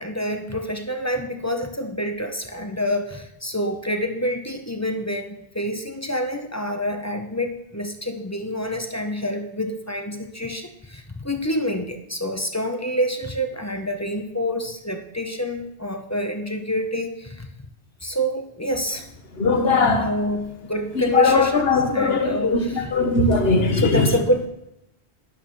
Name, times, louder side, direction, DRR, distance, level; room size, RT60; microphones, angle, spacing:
voice 1, 0.0-17.5 18.0-19.0 19.7-22.9 23.7-24.5, equal, 15° left, 5 dB, 0.8 m, -27 dB
voice 2, 19.4-20.1 20.9-24.1, left 3 dB, 65° left, 4 dB, 1.5 m, -20 dB
12.0 x 10.5 x 3.2 m, 0.84 s
omnidirectional pair, 1.1 m